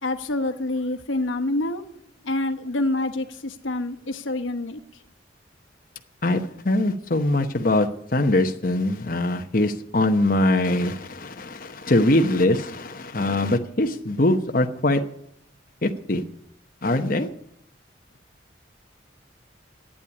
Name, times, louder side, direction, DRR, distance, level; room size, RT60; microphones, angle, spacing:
voice 1, 0.0-1.9 2.2-4.8, left 2 dB, 90° left, 6 dB, 1.0 m, -27 dB
voice 2, 6.2-15.0 15.8-16.2 16.8-17.3, left 1 dB, 45° left, 5 dB, 0.9 m, -22 dB
11.5 x 8.7 x 9.7 m, 0.71 s
head